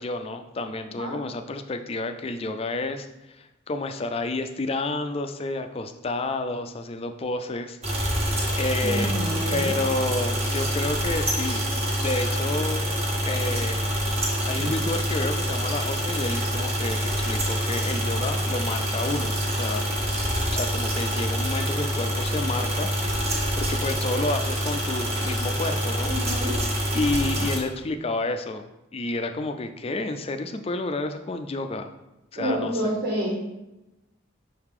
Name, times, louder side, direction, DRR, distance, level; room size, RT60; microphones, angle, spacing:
voice 1, 0.0-3.1 3.4-8.3 8.5-9.2 9.5-11.6 12.0-12.9 13.3-13.8 14.5-19.9 20.5-26.1 26.4-26.5 26.9-28.7 28.9-31.9 32.3-32.8, left 2 dB, 30° left, 8 dB, 0.4 m, -30 dB
sound 1, 7.8-27.6, equal, 30° right, 1.2 m, -26 dB
voice 2, 8.8-9.7 14.5-14.7 26.0-26.5 32.3-33.4, right 1 dB, 55° right, -4 dB, 1.5 m, -28 dB
5.7 x 4.8 x 3.6 m, 0.95 s
head